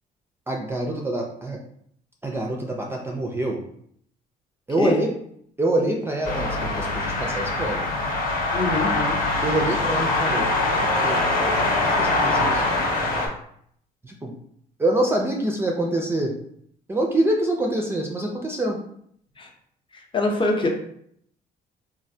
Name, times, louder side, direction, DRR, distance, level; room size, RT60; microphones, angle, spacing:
voice 1, 0.5-1.6 2.2-3.6 4.7-5.1 5.6-7.8 9.4-10.5 10.8-11.2 11.9-12.6 14.0-14.3 14.8-16.3 16.9-18.8, right 1 dB, 15° right, 0 dB, 0.4 m, -25 dB
sound 1, 6.2-13.3, left 2 dB, 55° left, 0.9 m, -23 dB
voice 2, 8.5-9.2 19.4-19.5 19.9-20.7, left 2 dB, 30° left, 1 dB, 0.7 m, -24 dB
3.2 x 2.4 x 2.7 m, 0.67 s
cardioid pair, 110°, 17 cm